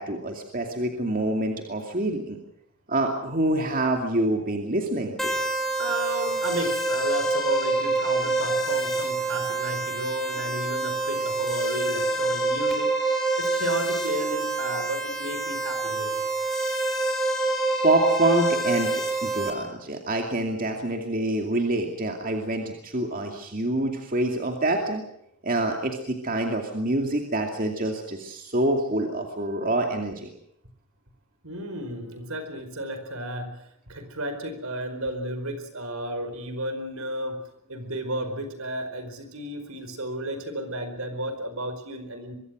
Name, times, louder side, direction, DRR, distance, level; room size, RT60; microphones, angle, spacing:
voice 1, 0.0-2.4 2.9-5.4 17.8-18.9 19.2-25.0 25.4-30.3, right 1 dB, 40° right, 3 dB, 2.5 m, -26 dB
sound 1, 5.2-19.5, right 3 dB, ahead, 4.6 m, -26 dB
voice 2, 5.4-16.2 31.4-37.4 37.7-42.4, right 1 dB, 65° right, 9 dB, 4.8 m, -33 dB
24.0 x 23.5 x 6.3 m, 0.74 s
head